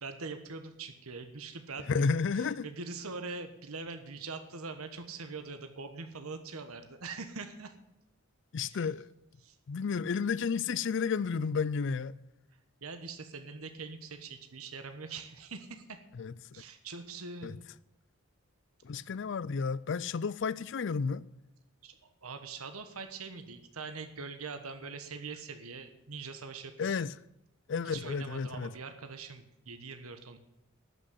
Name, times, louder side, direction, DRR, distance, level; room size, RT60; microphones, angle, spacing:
voice 1, 0.0-1.9 2.3-7.7 8.6-8.9 9.4-9.6 12.8-16.0 16.5-17.6 21.8-27.0 27.8-30.4, right 4 dB, 85° right, 1.3 m, -43 dB
voice 2, 1.9-2.7 8.5-9.1 9.7-12.1 16.2-16.3 17.4-17.5 18.8-21.2 26.8-27.1 27.7-28.7, left 5 dB, 55° left, 0.4 m, -31 dB
12.5 x 6.3 x 9.6 m
head